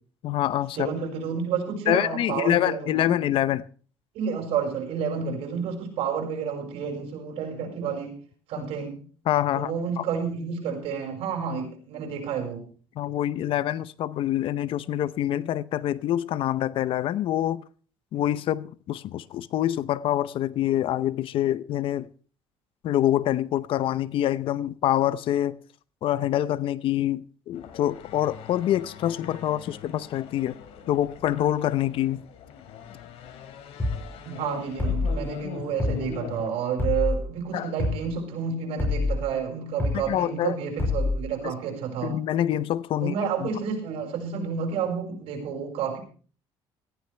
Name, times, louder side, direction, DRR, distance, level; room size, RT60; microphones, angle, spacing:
voice 1, 0.2-0.9 1.9-3.7 9.3-10.0 13.0-17.6 18.1-22.1 22.8-25.6 26.0-30.6 30.9-32.3 37.5-37.7 39.9-40.6 41.4-41.5 42.0-43.5, left 12 dB, 60° left, 0.7 m, -26 dB
voice 2, 0.8-3.1 4.1-8.2 8.5-9.0 9.5-12.7 34.2-42.1 43.0-46.0, right 6 dB, 75° right, 5.9 m, -30 dB
sound 1, 27.5-36.5, left 8 dB, 75° left, 2.6 m, -41 dB
sound 2, 33.8-34.0 34.8-35.2 35.8-36.0 36.8-37.2 37.8-38.0 38.8-39.2 39.8-40.0 40.8-41.2, left 3 dB, 20° left, 7.0 m, -25 dB
18.0 x 14.5 x 3.4 m
cardioid pair, 120°, 10 cm